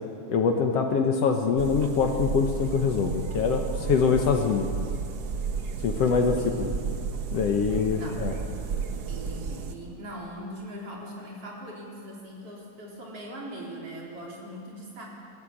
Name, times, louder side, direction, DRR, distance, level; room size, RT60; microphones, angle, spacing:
voice 1, 0.3-4.7 5.8-6.7 7.3-8.3, left 5 dB, 65° left, 4 dB, 1.9 m, -24 dB
sound 1, 1.6-9.7, right 5 dB, 85° right, 0.8 m, -33 dB
voice 2, 6.2-6.8 7.9-8.3 9.1-15.1, right 1 dB, 50° right, -2 dB, 4.6 m, -41 dB
22.5 x 14.0 x 8.6 m, 2.5 s
omnidirectional pair, 3.4 m